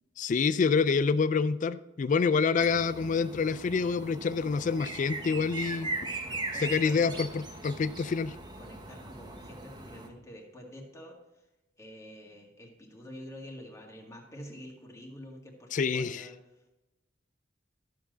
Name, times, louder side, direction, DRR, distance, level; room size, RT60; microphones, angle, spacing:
voice 1, 0.2-5.9 6.6-8.4 15.7-16.3, left 5 dB, 40° left, 14 dB, 0.3 m, -27 dB
sound 1, 2.6-10.1, right 2 dB, 25° right, 1.2 m, -39 dB
voice 2, 6.2-7.4 8.6-11.2 11.8-16.8, equal, 15° left, 0 dB, 1.9 m, -47 dB
12.5 x 7.4 x 3.9 m, 1.0 s
head